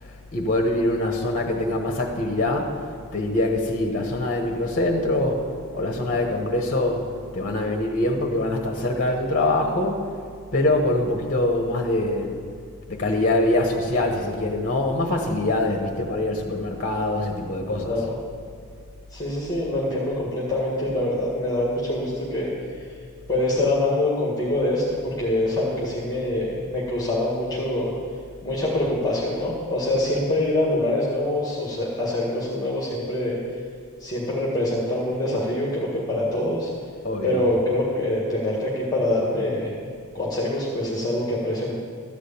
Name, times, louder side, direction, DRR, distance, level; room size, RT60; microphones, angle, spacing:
voice 1, 0.0-2.8 3.1-5.5 5.7-7.1 7.3-10.1 10.5-12.3 12.9-18.0 37.0-37.4, left 1 dB, 40° left, 2 dB, 1.1 m, -24 dB
voice 2, 19.1-22.5 23.3-27.9 28.4-33.4 34.0-36.7 37.2-39.7 40.1-41.7, left 1 dB, 15° left, -5 dB, 1.8 m, -25 dB
13.5 x 5.0 x 8.5 m, 2.1 s
head